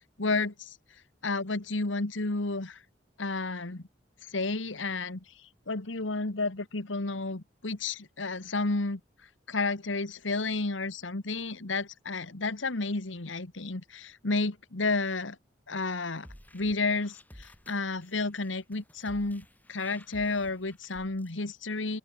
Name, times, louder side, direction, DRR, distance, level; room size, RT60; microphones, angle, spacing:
voice 1, 0.2-0.8 1.2-2.8 3.2-3.8 4.3-5.2 5.7-9.0 9.5-15.4 15.7-16.3 16.5-22.0, left 3 dB, 85° left, 1.7 m, -31 dB
sound 1, 16.1-21.3, equal, 10° left, 3.4 m, -53 dB
head